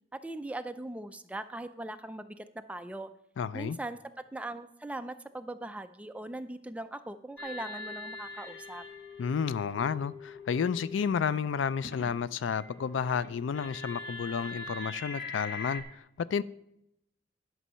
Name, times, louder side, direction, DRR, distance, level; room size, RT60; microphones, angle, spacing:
voice 1, 0.1-3.1 3.5-8.8, right 1 dB, 5° right, 0.4 m, -40 dB
voice 2, 3.4-3.8 9.2-15.8 16.2-16.4, left 6 dB, 85° left, 0.4 m, -31 dB
sound 1, 7.4-12.2 12.5-15.8, left 3 dB, 60° left, 1.3 m, -43 dB
11.0 x 6.2 x 5.6 m
head